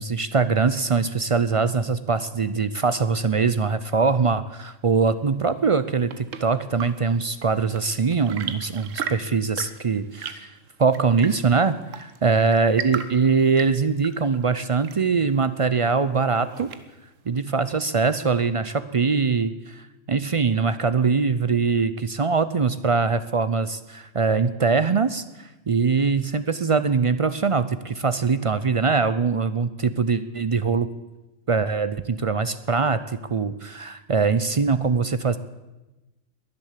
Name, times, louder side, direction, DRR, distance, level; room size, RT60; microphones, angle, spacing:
voice 1, 0.0-10.5 10.8-16.7 17.3-30.9 31.5-35.4, right 5 dB, 50° right, 13 dB, 0.4 m, -22 dB
Chirp tweet / Engine / Tap, 5.7-17.2, right 7 dB, 85° right, 1.3 m, -38 dB
21.5 x 7.8 x 7.4 m, 1.1 s
omnidirectional pair, 1.3 m